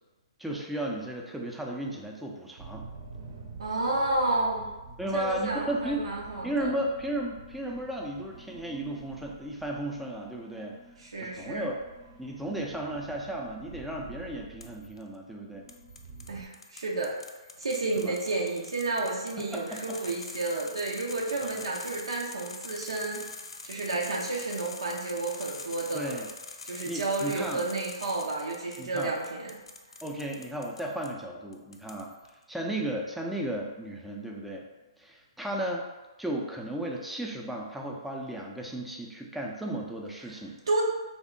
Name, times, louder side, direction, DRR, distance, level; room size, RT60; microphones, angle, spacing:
voice 1, 0.4-2.9 5.0-6.0 6.4-10.8 11.2-11.8 12.2-15.6 18.0-18.1 19.4-20.0 21.4-21.6 25.9-26.3 26.9-27.6 28.8-29.1 30.0-32.1 32.5-34.7 35.0-35.8 36.2-40.6, right 1 dB, ahead, -1 dB, 0.4 m, -34 dB
sound 1, 2.6-16.5, right 3 dB, 45° right, 0.7 m, -49 dB
voice 2, 3.6-4.7 5.1-6.7 11.0-11.7 16.3-17.1 17.6-23.2 23.6-26.2 26.6-29.6 40.7-40.8, right 2 dB, 85° right, -2 dB, 0.5 m, -31 dB
sound 2, 14.6-15.0 15.7-31.1 31.5-32.3, left 3 dB, 80° left, 0.4 m, -45 dB
3.3 x 2.1 x 3.7 m, 1.1 s
hypercardioid pair, 135°, 3 cm